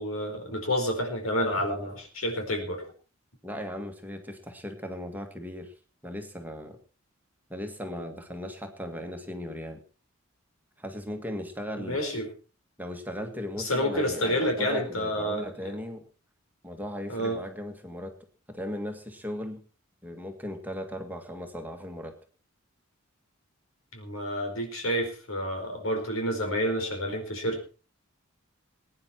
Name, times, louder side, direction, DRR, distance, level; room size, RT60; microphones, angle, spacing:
voice 1, 0.0-2.9 11.8-12.3 13.6-15.7 17.1-17.4 23.9-27.6, equal, 80° left, 4 dB, 4.6 m, -29 dB
voice 2, 3.4-5.7 6.0-6.8 7.5-9.8 10.8-12.0 12.8-16.0 16.6-18.1 18.5-19.6 20.0-22.1, equal, 10° right, 4 dB, 1.9 m, -37 dB
21.0 x 9.8 x 4.5 m, 0.37 s
head